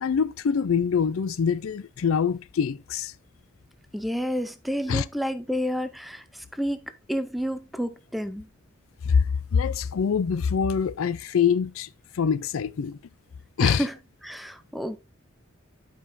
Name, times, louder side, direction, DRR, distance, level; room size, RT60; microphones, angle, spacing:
voice 1, 0.0-3.1 4.9-5.0 9.1-9.2 9.5-11.9 12.2-13.0 13.6-13.8, left 6 dB, 80° left, 0.4 m, -24 dB
voice 2, 3.9-8.5 13.6-14.0 14.2-15.0, equal, ahead, 0.6 m, -30 dB
11.0 x 5.2 x 2.6 m
head